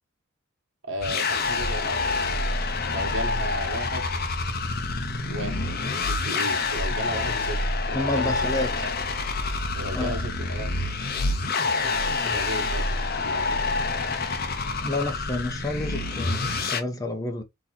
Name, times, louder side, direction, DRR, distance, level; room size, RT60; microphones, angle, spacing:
voice 1, 0.8-2.5 2.8-4.0 5.2-5.6 6.1-7.6 7.9-8.9 9.7-10.7 11.8-13.6, equal, 60° right, 1.5 m, -35 dB
sound 1, 1.0-16.8, left 3 dB, 45° left, 0.8 m, -27 dB
voice 2, 7.9-8.7 9.9-10.3 14.8-17.4, left 2 dB, 15° left, 0.8 m, -29 dB
4.2 x 3.1 x 4.0 m
head